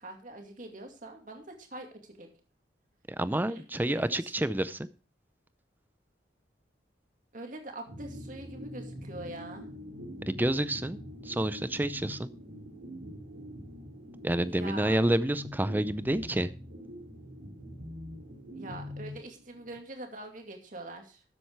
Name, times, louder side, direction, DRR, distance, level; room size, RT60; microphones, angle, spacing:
voice 1, 0.0-2.3 3.5-4.3 7.3-9.7 14.4-15.0 18.5-21.2, right 2 dB, 45° right, 3 dB, 2.4 m, -44 dB
voice 2, 3.2-4.9 10.3-11.0 11.2-12.3 14.2-16.5, right 1 dB, 10° right, 14 dB, 0.5 m, -28 dB
sound 1, 7.9-19.8, equal, 85° right, 4.1 m, -44 dB
13.0 x 7.7 x 4.6 m, 0.36 s
head